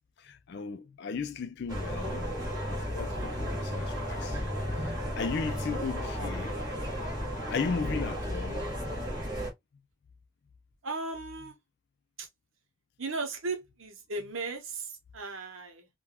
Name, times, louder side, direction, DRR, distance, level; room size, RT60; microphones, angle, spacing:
voice 1, 0.2-2.3 2.7-4.5 4.8-6.6 7.5-8.7, left 5 dB, 50° left, 0.4 m, -36 dB
sound 1, 1.7-9.5, equal, 15° right, 1.2 m, -34 dB
sound 2, 1.9-8.2, left 1 dB, 45° right, 1.6 m, -45 dB
voice 2, 10.8-11.5 12.2-12.3 13.0-15.9, right 3 dB, 65° right, 0.8 m, -36 dB
3.3 x 2.2 x 2.2 m
head